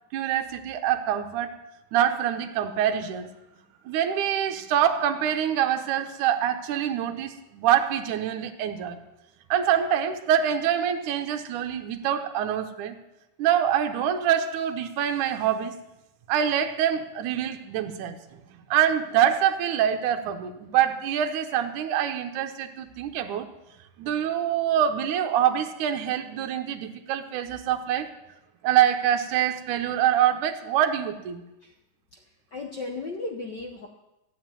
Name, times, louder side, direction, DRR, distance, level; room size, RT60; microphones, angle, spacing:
voice 1, 0.1-1.5 1.9-3.3 3.9-9.0 9.5-12.9 13.4-15.8 16.3-18.2 18.7-23.5 24.0-28.1 28.6-31.4, right 10 dB, 75° right, 5 dB, 2.4 m, -25 dB
voice 2, 32.5-33.9, left 3 dB, 80° left, 2 dB, 0.9 m, -35 dB
13.5 x 8.5 x 8.9 m, 0.94 s
omnidirectional pair, 3.7 m